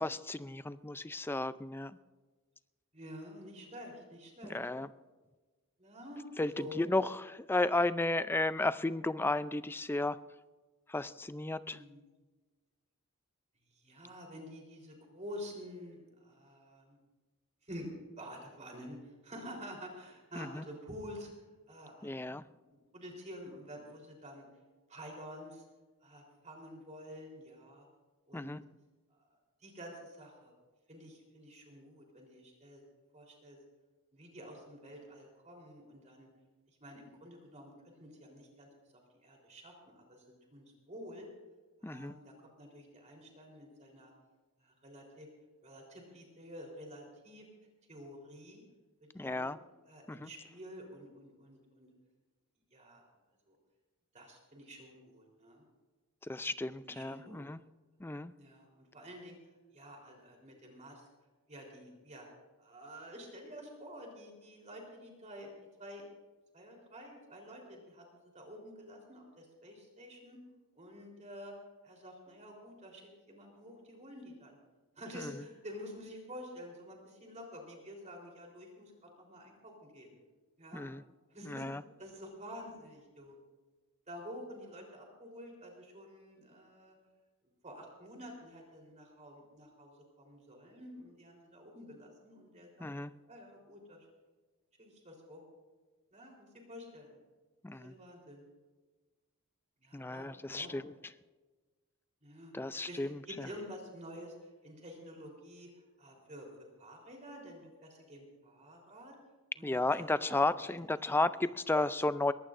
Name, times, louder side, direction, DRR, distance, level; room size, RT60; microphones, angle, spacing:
voice 1, 0.0-2.0 4.5-4.9 6.4-10.2 10.9-11.8 20.4-20.6 22.0-22.4 28.3-28.6 41.8-42.1 49.1-49.6 50.1-50.3 56.2-57.6 58.0-58.3 75.1-75.3 80.7-81.0 81.4-81.8 92.8-93.2 97.6-97.9 99.9-100.9 102.5-103.5 109.6-112.3, left 2 dB, 10° left, 14 dB, 0.4 m, -33 dB
voice 2, 2.9-4.6 5.8-6.3 6.5-6.8 11.6-12.0 13.7-17.0 17.6-17.9 18.2-21.3 21.7-22.2 22.7-24.4 24.9-25.6 26.0-27.9 28.3-28.6 29.1-29.3 29.6-30.5 30.9-32.8 33.1-33.6 34.1-36.3 36.8-38.7 39.2-40.2 40.5-41.3 41.8-44.1 44.6-45.3 45.6-47.5 47.9-48.6 49.2-49.5 49.9-51.9 52.7-53.0 53.5-53.6 54.1-55.6 56.8-57.4 58.4-59.4 59.7-61.1 61.5-62.3 62.6-65.5 65.8-66.0 66.5-70.4 70.7-71.5 71.8-74.6 75.0-80.2 80.6-80.8 81.3-81.7 82.0-83.4 84.1-87.0 87.6-92.9 93.3-94.1 94.8-95.4 96.1-97.2 97.7-98.5 99.8-100.8 102.2-102.5 102.9-104.4 104.6-106.5 106.8-109.2 109.6-109.7 110.0-110.8 111.2-111.4, equal, 35° right, 0 dB, 3.7 m, -49 dB
22.5 x 18.0 x 2.6 m, 1.3 s
head